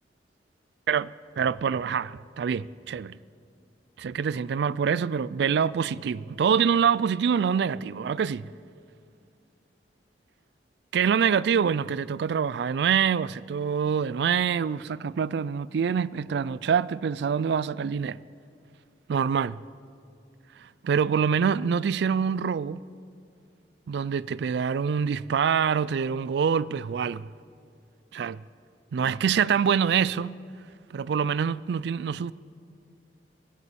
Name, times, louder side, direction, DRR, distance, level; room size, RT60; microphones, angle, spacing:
voice 1, 1.4-3.2 4.0-8.5 10.9-18.2 19.1-19.6 20.8-22.8 23.9-27.3 28.1-28.4 28.9-30.4 30.9-32.3, right 7 dB, 70° right, 0.3 m, -25 dB
24.0 x 8.3 x 7.0 m
head